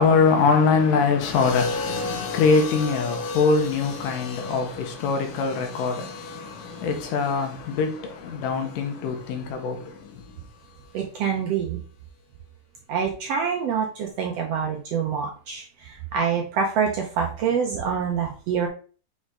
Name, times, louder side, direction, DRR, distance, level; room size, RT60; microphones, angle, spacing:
voice 1, 0.0-6.0 6.8-7.9 8.2-9.8, left 4 dB, 85° left, 2.7 m, -22 dB
sound 1, 1.2-9.4 10.6-11.0, left 3 dB, 65° left, 2.0 m, -35 dB
voice 2, 10.9-11.8 12.9-18.7, right 6 dB, 70° right, 1.5 m, -26 dB
6.1 x 4.2 x 3.7 m
omnidirectional pair, 3.7 m